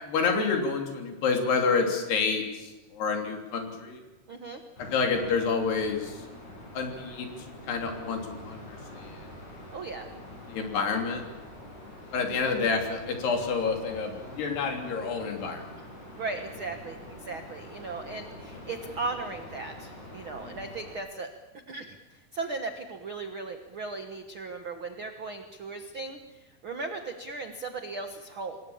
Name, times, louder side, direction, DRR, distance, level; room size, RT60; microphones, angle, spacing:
voice 1, 0.0-4.0 4.9-6.2 6.8-9.3 10.5-11.2 12.1-15.7, left 5 dB, 85° left, 3 dB, 5.2 m, -29 dB
voice 2, 4.3-4.6 9.7-10.1 12.5-12.6 15.8-15.9 16.1-21.3 21.7-28.6, right 3 dB, 70° right, 6 dB, 1.2 m, -37 dB
sound 1, 4.8-20.9, left 1 dB, 50° left, 8.3 m, -45 dB
27.0 x 21.5 x 7.2 m, 1.1 s
omnidirectional pair, 4.6 m